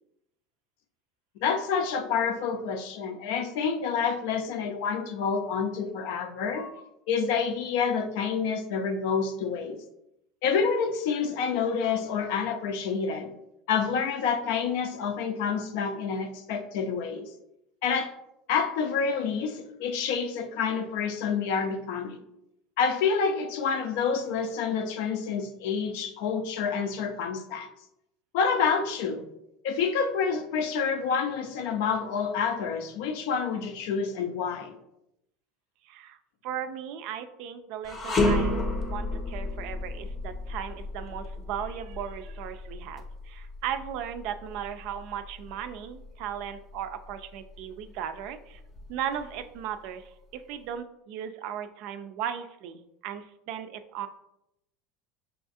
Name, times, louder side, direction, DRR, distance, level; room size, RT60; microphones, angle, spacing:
voice 1, 1.4-6.8 7.1-9.8 10.4-13.3 13.7-17.3 17.8-18.1 18.5-22.2 22.8-27.7 28.3-29.2 29.6-34.8, left 6 dB, 75° left, 7 dB, 0.5 m, -28 dB
voice 2, 35.8-36.2 36.4-48.6 48.9-54.1, right 9 dB, 60° right, 9 dB, 0.3 m, -37 dB
sound 1, 37.8-47.1 47.5-47.7 48.5-49.4, left 2 dB, 30° left, 0.5 m, -32 dB
5.4 x 2.4 x 2.6 m, 0.83 s
supercardioid pair, 140°, 0 cm